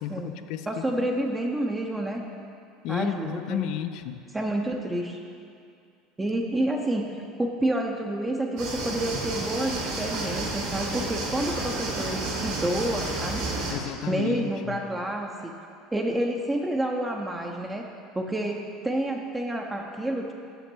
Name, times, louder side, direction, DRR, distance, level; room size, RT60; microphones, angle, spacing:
voice 1, 0.0-0.7 1.0-1.1 2.8-4.2 13.7-14.8, left 10 dB, 65° left, 10 dB, 0.4 m, -32 dB
voice 2, 0.7-2.2 2.9-3.7 4.3-5.2 6.2-7.1 7.4-13.4 14.1-15.5 15.9-17.9 18.1-20.3, right 1 dB, 15° right, 1 dB, 0.6 m, -29 dB
sound 1, 8.6-13.7, right 2 dB, 70° right, 1.9 m, -31 dB
6.8 x 5.8 x 6.2 m, 2.5 s
hypercardioid pair, 90°, 0 cm